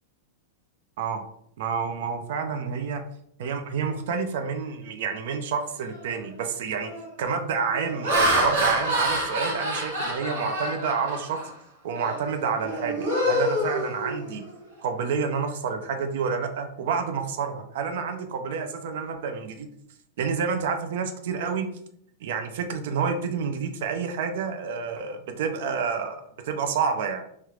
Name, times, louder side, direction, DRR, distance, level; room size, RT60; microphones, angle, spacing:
voice 1, 1.6-3.0 3.4-6.9 7.2-11.4 11.8-14.4 14.8-19.7 20.2-21.7 22.2-27.2, right 5 dB, 60° right, 6 dB, 0.5 m, -29 dB
Laughter, 5.9-6.2 6.8-7.1 7.7-11.5 11.9-12.2 12.6-14.5, equal, 85° right, 1.2 m, -27 dB
3.2 x 2.4 x 3.0 m, 0.68 s
supercardioid pair, 165°, 0 cm